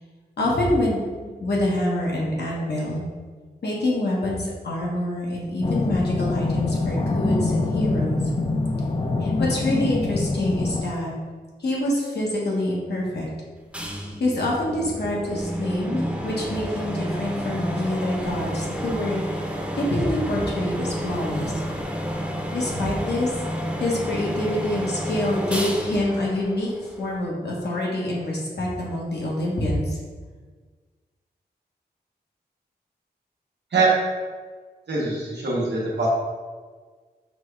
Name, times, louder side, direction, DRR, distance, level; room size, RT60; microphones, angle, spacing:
voice 1, 0.4-3.0 3.6-8.2 9.2-11.1 11.6-13.3 14.2-21.5 22.5-23.4 23.8-30.0, left 1 dB, 75° left, -4 dB, 1.1 m, -26 dB
sound 1, 5.6-10.8, left 3 dB, 30° left, 0.4 m, -24 dB
sound 2, 13.7-27.2, equal, 5° right, 0.7 m, -30 dB
voice 2, 34.9-36.1, right 3 dB, 90° right, -5 dB, 1.0 m, -23 dB
5.8 x 2.3 x 3.2 m, 1.5 s
cardioid pair, 45°, 18 cm